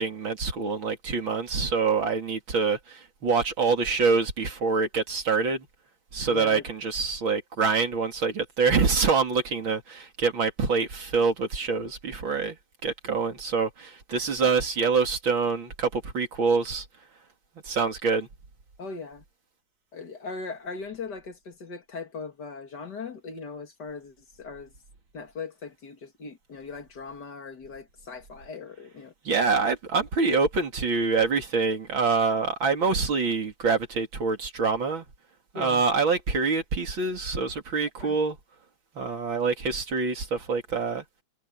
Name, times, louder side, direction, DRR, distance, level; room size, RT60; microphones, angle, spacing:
voice 1, 0.0-5.7 6.1-12.6 12.8-16.9 17.7-18.3 29.3-35.0 35.5-38.4 39.0-41.0, right 4 dB, 75° right, 3.7 m, -25 dB
voice 2, 6.3-6.6 18.8-19.2 19.9-24.7 25.1-29.1 35.5-35.8 38.0-38.2, left 4 dB, 55° left, 2.7 m, -39 dB
omnidirectional pair, 2.2 m